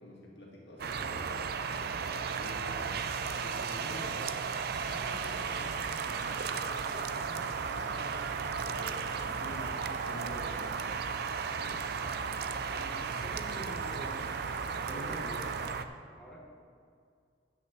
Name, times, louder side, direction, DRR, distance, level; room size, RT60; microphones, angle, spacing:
voice 1, 0.0-3.0 3.4-4.3 4.8-11.2 11.6-12.0 14.9-15.3, left 1 dB, 65° left, -3 dB, 2.1 m, -48 dB
sound 1, 0.8-15.8, right 5 dB, 55° right, 0.4 m, -35 dB
sound 2, 2.9-15.7, right 4 dB, 75° right, 1.1 m, -52 dB
voice 2, 9.2-9.6 12.7-14.4 14.9-15.6 16.2-16.4, right 1 dB, 5° left, -4 dB, 1.2 m, -48 dB
8.2 x 6.3 x 6.9 m, 2.3 s
head